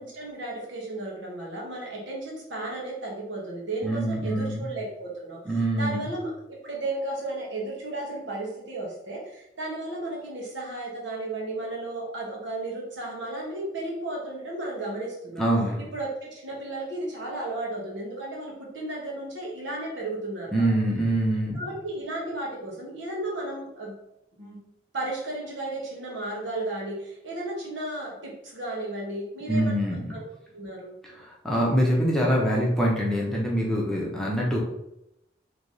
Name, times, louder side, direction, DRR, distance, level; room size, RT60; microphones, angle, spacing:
voice 1, 0.0-15.4 15.9-20.7 21.5-24.0 24.4-24.6 24.9-29.8 30.1-30.3 30.5-31.0, right 2 dB, 80° right, -3 dB, 1.3 m, -34 dB
voice 2, 3.8-4.6 5.5-6.0 15.4-15.8 20.5-21.6 29.5-30.2 31.4-34.6, right 1 dB, 5° left, -4 dB, 0.8 m, -24 dB
3.4 x 2.9 x 4.0 m, 0.83 s
head